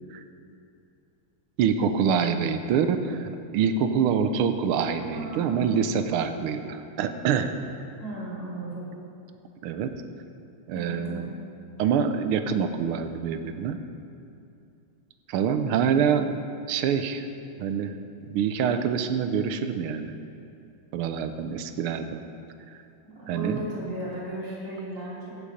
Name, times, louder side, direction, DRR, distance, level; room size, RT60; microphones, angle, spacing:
voice 1, 1.6-7.6 9.6-9.9 10.7-11.3 11.8-13.8 15.3-16.4 16.7-17.3 17.6-18.0 18.3-20.1 20.9-22.2 22.7-22.8 23.3-23.6, right 7 dB, 85° right, 9 dB, 1.6 m, -26 dB
voice 2, 5.1-5.7 8.0-8.9 10.7-11.3 23.0-25.3, right 1 dB, 60° right, -7 dB, 4.0 m, -35 dB
16.0 x 7.1 x 5.0 m, 2.6 s
omnidirectional pair, 2.3 m